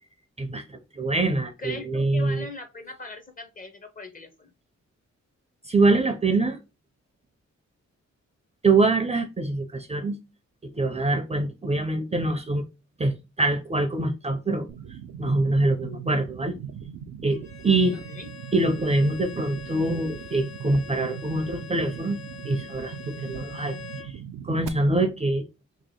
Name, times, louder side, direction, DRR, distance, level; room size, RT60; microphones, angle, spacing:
voice 1, 0.4-2.5 5.6-6.6 8.6-10.2 10.6-12.7 13.0-16.5 17.2-18.0 18.5-22.2 22.4-24.2 24.4-25.4, right 2 dB, 20° right, 6 dB, 0.4 m, -24 dB
voice 2, 1.6-4.5 18.1-18.3, left 3 dB, 30° left, 7 dB, 0.6 m, -40 dB
sound 1, 14.7-24.7, right 8 dB, 85° right, 0.5 m, -39 dB
Bowed string instrument, 17.3-24.1, left 7 dB, 65° left, 1.1 m, -44 dB
2.9 x 2.8 x 4.1 m, 0.27 s
wide cardioid pair, 160°, 30 cm